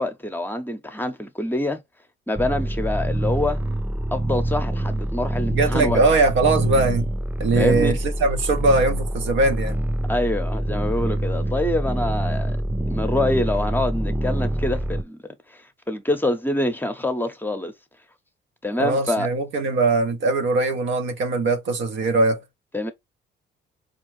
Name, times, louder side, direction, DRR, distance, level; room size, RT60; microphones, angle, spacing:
voice 1, 0.0-1.8 2.3-3.6 4.1-6.0 7.6-8.0 10.1-12.6 12.9-15.2 15.5-17.7 18.6-19.3 22.7-22.9, left 1 dB, 10° left, 0.7 m, -25 dB
sound 1, 2.3-15.0, right 1 dB, 10° right, 0.3 m, -25 dB
voice 2, 5.5-7.1 7.4-9.8 18.8-22.4, right 3 dB, 75° right, 0.9 m, -21 dB
4.3 x 2.5 x 3.1 m
cardioid pair, 90°, 20 cm